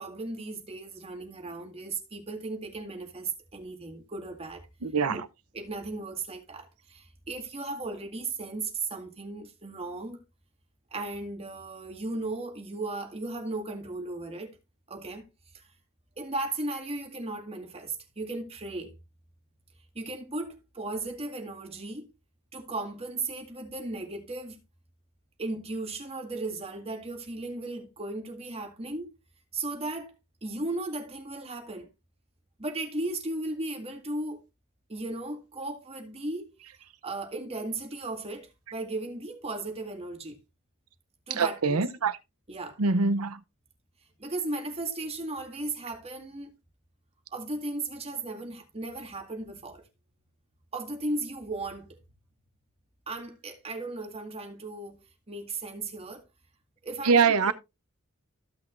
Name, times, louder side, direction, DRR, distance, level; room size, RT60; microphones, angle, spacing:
voice 1, 0.0-4.7 5.1-5.2 5.5-10.2 10.9-14.6 14.9-15.2 15.5-15.6 16.2-18.9 20.0-22.1 22.5-24.6 25.4-29.1 29.5-30.1 30.4-31.9 32.6-34.4 34.9-36.5 37.0-40.4 41.3-41.9 42.5-42.8 44.2-46.5 47.3-49.8 50.7-52.0 53.1-55.0 55.3-56.3 56.8-57.5, right 2 dB, 30° right, 1.9 m, -36 dB
voice 2, 4.8-5.2 41.3-42.1 42.8-43.4 57.0-57.5, right 5 dB, 90° right, 0.8 m, -23 dB
14.5 x 6.0 x 2.6 m
head